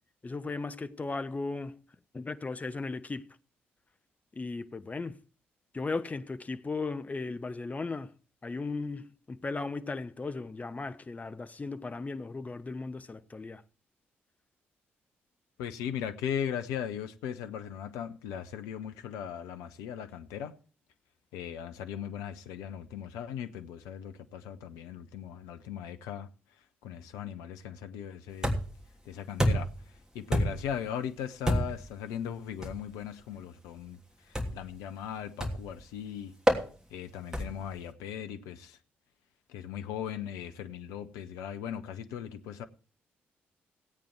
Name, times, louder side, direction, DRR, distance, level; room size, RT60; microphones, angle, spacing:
voice 1, 0.2-1.8 2.1-3.3 4.4-5.2 5.7-8.1 8.4-13.6, left 3 dB, 25° left, 0.9 m, -36 dB
voice 2, 15.6-20.5 21.3-26.3 26.8-28.6 29.0-29.7 30.1-34.0 34.3-36.3 36.9-38.8 39.5-42.7, left 9 dB, 70° left, 0.9 m, -38 dB
sound 1, 28.4-28.9 29.4-29.8 30.3-30.8 31.5-31.9 32.6-32.8 34.3-34.7 35.4-35.8 36.5-36.7 37.3-37.7, equal, 10° right, 3.1 m, -28 dB
17.0 x 8.7 x 4.5 m
figure-of-eight pair, 40°, 6 cm